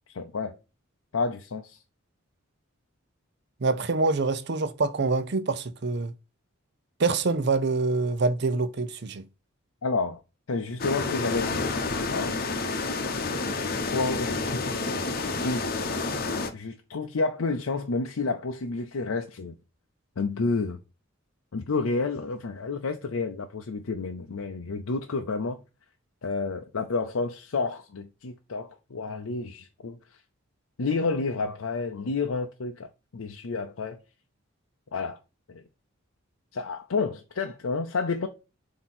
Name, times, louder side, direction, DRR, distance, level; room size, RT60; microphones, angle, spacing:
voice 1, 0.1-0.5 1.1-1.8 9.8-10.2 10.5-11.6 12.1-12.3 13.8-15.0 15.3-19.5 20.2-20.8 21.5-25.6 26.2-30.0 30.8-32.9 33.1-34.0 34.9-35.2 35.5-35.6 36.5-38.3, left 4 dB, 85° left, 0.6 m, -30 dB
voice 2, 3.6-6.1 7.0-9.2, right 3 dB, 55° right, 0.6 m, -25 dB
sound 1, 10.8-16.5, left 3 dB, 45° left, 0.8 m, -29 dB
7.5 x 2.9 x 4.3 m
head